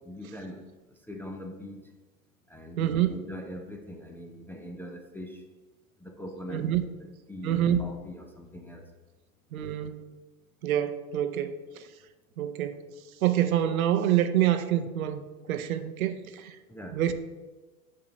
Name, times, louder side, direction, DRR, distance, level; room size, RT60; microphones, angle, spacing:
voice 1, 0.0-1.9 2.5-5.5 6.0-6.7 7.3-8.9 16.7-17.0, left 1 dB, 5° left, 3 dB, 0.5 m, -42 dB
voice 2, 2.8-3.1 6.5-6.8 7.4-7.8 9.5-10.0 10.6-11.6 12.4-12.8 13.2-15.2 15.5-16.6 16.9-17.1, right 11 dB, 70° right, 10 dB, 0.8 m, -26 dB
7.6 x 3.7 x 6.5 m, 1.2 s
hypercardioid pair, 95°, 44 cm